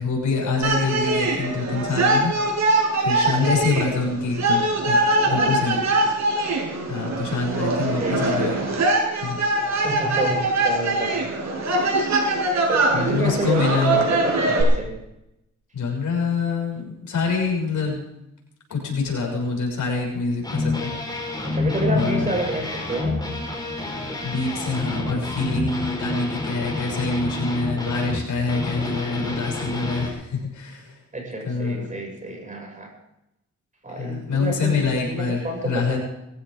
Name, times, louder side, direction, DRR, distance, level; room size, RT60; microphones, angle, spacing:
voice 1, 0.0-2.3 3.0-5.0 5.2-5.8 6.9-8.7 9.2-9.4 12.9-14.0 15.7-18.0 18.7-20.9 21.9-22.3 24.2-30.9 31.4-31.9 34.0-36.0, left 4 dB, 75° left, 0 dB, 6.5 m, -25 dB
sound 1, 0.6-14.6, right 2 dB, 65° right, 7.1 m, -22 dB
voice 2, 3.2-3.6 5.2-5.6 8.0-8.2 9.7-11.6 12.7-14.9 21.4-23.2 31.1-32.9 33.8-34.8 35.1-36.0, right 1 dB, 25° right, 1 dB, 7.1 m, -29 dB
sound 2, 20.4-30.1, left 2 dB, 15° left, 4.9 m, -28 dB
21.5 x 15.5 x 3.9 m, 0.86 s
cardioid pair, 120°, 30 cm